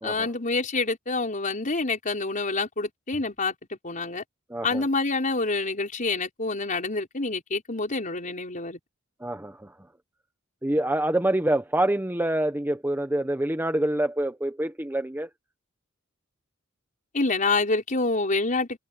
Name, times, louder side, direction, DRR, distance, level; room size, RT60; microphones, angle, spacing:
voice 1, 0.0-4.2 4.6-8.8 17.1-18.8, left 3 dB, 40° left, 5.0 m, -27 dB
voice 2, 4.5-4.8 9.2-9.7 10.6-15.3, right 1 dB, 10° right, 1.1 m, -26 dB
head